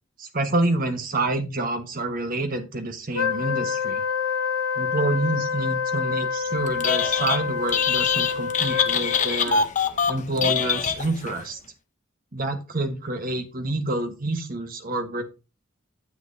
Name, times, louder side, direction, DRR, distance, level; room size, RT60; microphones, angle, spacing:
voice 1, 0.2-4.0 4.8-9.7 10.1-11.6 12.3-15.2, right 2 dB, 40° right, 6 dB, 1.2 m, -28 dB
Wind instrument woodwind instrument, 3.1-9.4, left 6 dB, 90° left, 0.7 m, -27 dB
Telephone, 6.7-7.4 7.7-11.4, left 6 dB, 35° left, 0.7 m, -24 dB
9.6 x 7.7 x 2.7 m, 0.30 s
head